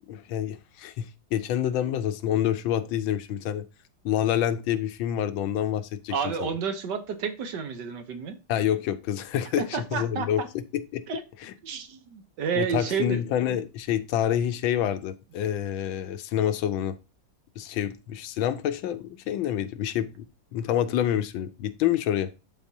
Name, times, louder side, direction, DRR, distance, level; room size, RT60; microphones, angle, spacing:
voice 1, 0.1-3.7 4.0-6.5 8.5-11.0 11.4-11.5 12.6-16.9 17.6-20.3 20.5-22.3, left 10 dB, 80° left, 1.4 m, -27 dB
voice 2, 6.1-8.4 9.6-10.5 11.1-11.2 11.6-13.2, right 6 dB, 65° right, 1.3 m, -30 dB
11.5 x 4.0 x 2.7 m
omnidirectional pair, 2.2 m